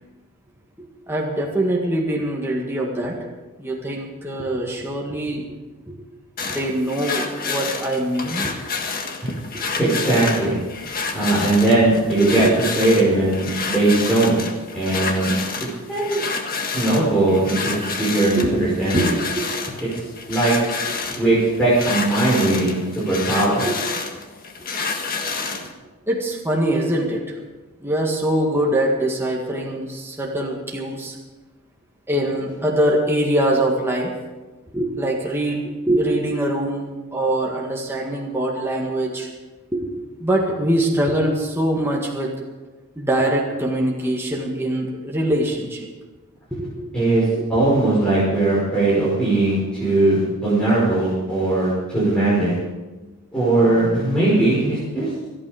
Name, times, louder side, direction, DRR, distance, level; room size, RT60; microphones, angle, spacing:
voice 1, 1.1-3.2 3.6-5.5 5.9-6.0 6.4-8.5 12.2-12.5 18.4-18.6 18.9-19.7 21.1-21.2 23.7-23.8 26.1-27.3 27.8-31.2 32.1-34.1 34.7-39.3 39.7-39.9 40.2-42.3 43.0-45.9 46.5-46.9 47.4-47.6, right 1 dB, 10° right, -2 dB, 1.8 m, -23 dB
sound 1, 6.4-25.7, left 4 dB, 40° left, 1.7 m, -29 dB
voice 2, 9.8-10.6 11.1-14.4 14.7-15.3 15.9-16.2 16.7-19.2 20.3-20.5 21.2-23.7 46.9-47.2 47.5-52.6 53.3-55.1, right 2 dB, 5° left, -9 dB, 5.0 m, -19 dB
26.0 x 8.8 x 5.0 m, 1.2 s
head